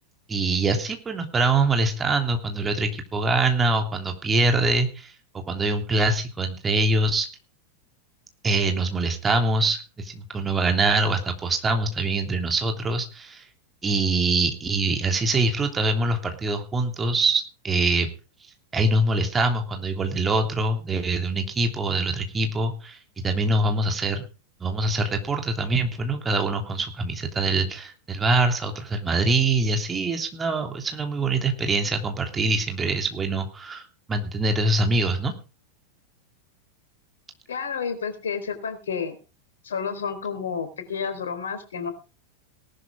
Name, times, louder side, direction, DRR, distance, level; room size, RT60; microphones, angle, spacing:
voice 1, 0.3-7.3 8.4-13.4 13.8-18.1 18.7-23.0 23.2-24.2 24.6-33.8 34.1-35.3, right 2 dB, 15° right, 4 dB, 3.1 m, -24 dB
voice 2, 37.5-39.2 39.6-41.9, left 6 dB, 65° left, 8 dB, 4.1 m, -30 dB
18.5 x 12.0 x 3.6 m, 0.32 s
figure-of-eight pair, 90°, 0 cm